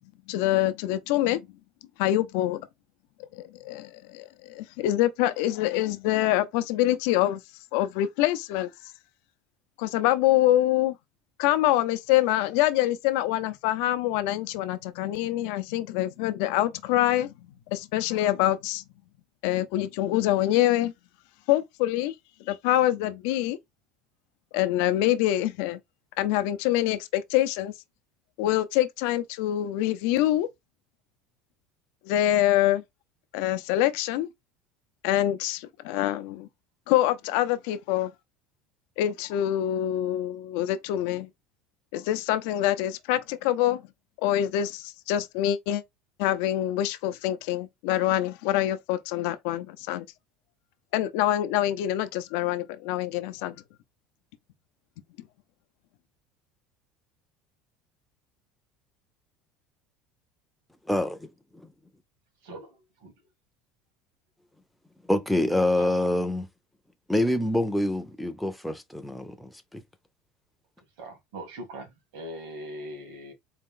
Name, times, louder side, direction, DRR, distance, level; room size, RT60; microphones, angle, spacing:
voice 1, 0.3-1.4 2.0-2.7 3.3-7.4 7.7-8.7 9.8-10.9 11.4-17.3 17.7-18.8 19.4-20.9 21.5-22.1 22.5-23.6 24.5-25.8 26.2-27.7 28.4-30.5 32.0-32.8 33.3-34.3 35.0-36.5 36.9-38.1 39.0-41.3 41.9-43.8 44.2-45.8 46.2-50.0 50.9-53.5, left 13 dB, 75° left, 0.6 m, -25 dB
voice 2, 60.9-61.2 65.1-66.5 67.1-69.8, left 1 dB, ahead, 0.5 m, -26 dB
voice 3, 70.8-73.3, right 1 dB, 85° right, 2.3 m, -41 dB
4.2 x 2.5 x 3.7 m
cardioid pair, 155°, 0 cm